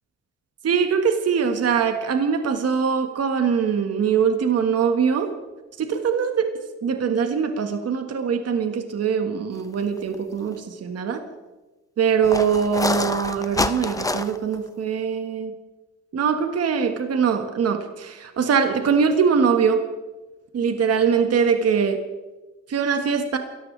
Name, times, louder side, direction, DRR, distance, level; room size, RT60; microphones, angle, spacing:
voice 1, 0.6-5.3 5.8-6.5 6.8-11.2 12.0-15.5 16.1-19.8 20.5-22.0 22.7-23.4, right 6 dB, 55° right, 6 dB, 1.7 m, -22 dB
sound 1, 10.0-10.2 10.5-10.6 12.2-14.5, left 2 dB, 10° left, 0.9 m, -26 dB
29.0 x 14.0 x 3.4 m, 1.2 s
cardioid pair, 90°, 30 cm